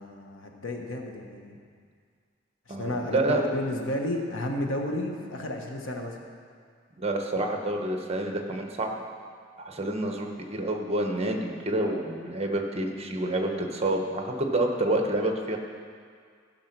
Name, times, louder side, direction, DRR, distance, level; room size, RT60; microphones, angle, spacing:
voice 1, 0.0-1.6 2.7-6.2, left 1 dB, 90° left, 2 dB, 1.3 m, -32 dB
voice 2, 2.7-3.4 7.0-9.0 9.6-15.6, right 1 dB, 30° right, 3 dB, 1.1 m, -28 dB
15.0 x 5.9 x 6.0 m, 2.1 s
head